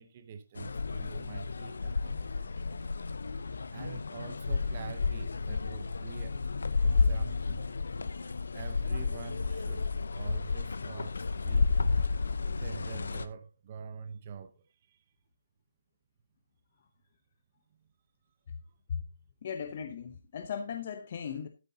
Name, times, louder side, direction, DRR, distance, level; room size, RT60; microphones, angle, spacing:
voice 1, 0.0-2.6 3.7-6.4 6.8-7.6 8.5-11.7 12.6-15.0 17.7-17.9, right 6 dB, 25° right, 0.7 m, -46 dB
sound 1, 0.6-13.3, left 4 dB, 85° left, 0.8 m, -31 dB
voice 2, 19.4-21.5, left 7 dB, 35° left, 0.7 m, -37 dB
12.0 x 9.3 x 2.8 m
hypercardioid pair, 175°, 0 cm